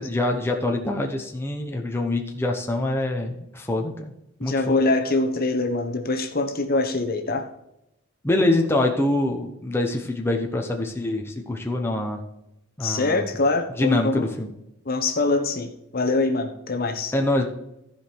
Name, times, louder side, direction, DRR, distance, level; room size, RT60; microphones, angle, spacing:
voice 1, 0.0-4.1 4.4-4.8 8.2-12.2 12.8-13.2 13.8-14.5 17.1-17.5, left 2 dB, 10° left, 2 dB, 1.0 m, -25 dB
voice 2, 4.4-7.5 12.8-14.3 14.8-17.1, left 2 dB, 45° left, 5 dB, 1.0 m, -24 dB
14.5 x 5.1 x 4.6 m, 0.84 s
head